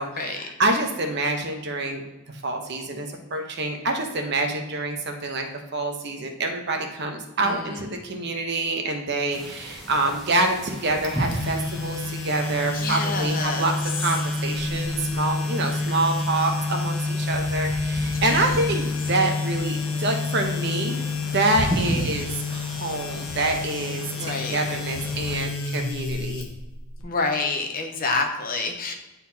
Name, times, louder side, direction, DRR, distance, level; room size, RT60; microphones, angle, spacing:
voice 1, 0.0-2.0 2.4-5.5 5.7-21.0 21.3-26.4, right 2 dB, 50° right, 3 dB, 0.9 m, -26 dB
sound 1, 9.3-25.4, right 1 dB, ahead, 1.0 m, -35 dB
sound 2, 11.0-27.0, left 3 dB, 70° left, 0.9 m, -29 dB
voice 2, 12.7-13.7 18.1-18.5 21.7-21.9 24.2-24.6 27.0-28.9, left 3 dB, 40° left, 3 dB, 0.8 m, -28 dB
9.4 x 4.1 x 2.8 m, 1.0 s
head